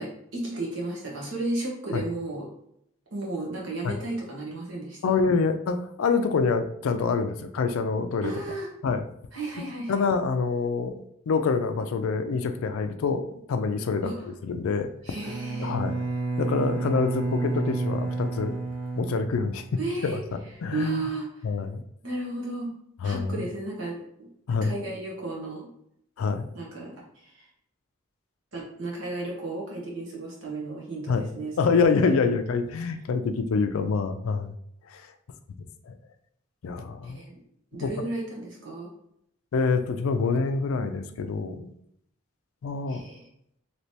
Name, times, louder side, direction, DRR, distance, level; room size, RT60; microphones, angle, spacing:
voice 1, 0.0-2.5 3.1-5.2 8.2-8.7 9.3-10.0 14.0-14.1 15.0-15.7 19.8-20.2 20.7-21.5 22.0-22.7 23.0-24.0 24.6-25.7 26.5-27.5 28.5-32.4 37.0-37.3 37.7-38.9 42.9-43.2, right 2 dB, 70° right, -4 dB, 1.1 m, -34 dB
voice 2, 5.0-8.3 8.8-9.0 9.9-14.1 14.4-14.9 15.6-15.9 16.4-18.5 19.0-20.2 20.6-21.1 21.4-21.8 23.0-23.4 24.5-24.7 26.2-26.5 31.1-31.3 31.6-34.5 34.9-35.1 35.9-36.0 36.6-37.2 37.7-37.9 39.5-41.7 42.6-43.0, left 4 dB, 85° left, 9 dB, 0.4 m, -26 dB
Bowed string instrument, 15.2-19.9, right 3 dB, 90° right, 1.0 m, -30 dB
3.2 x 2.9 x 2.8 m, 0.73 s
head